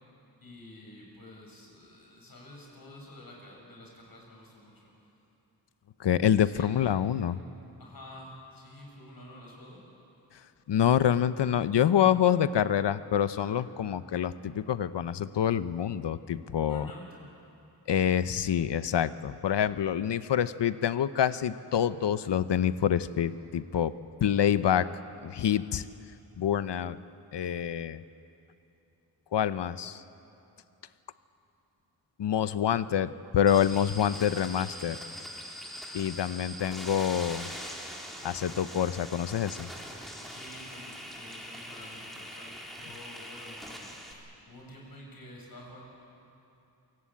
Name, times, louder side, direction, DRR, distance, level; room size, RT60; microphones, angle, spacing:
voice 1, 0.4-4.9 6.2-6.7 7.8-9.8 16.7-17.1 40.3-45.8, left 1 dB, 55° left, -1 dB, 7.1 m, -49 dB
voice 2, 6.0-7.4 10.7-16.9 17.9-23.9 24.2-24.9 25.2-25.9 26.4-27.0 27.3-28.0 29.3-30.0 32.2-35.0 35.9-37.5 38.2-39.7, left 9 dB, 80° left, 14 dB, 0.8 m, -26 dB
sound 1, 33.5-44.1, equal, ahead, 3.6 m, -42 dB
27.5 x 17.5 x 8.5 m, 2.8 s
wide cardioid pair, 85°, 42 cm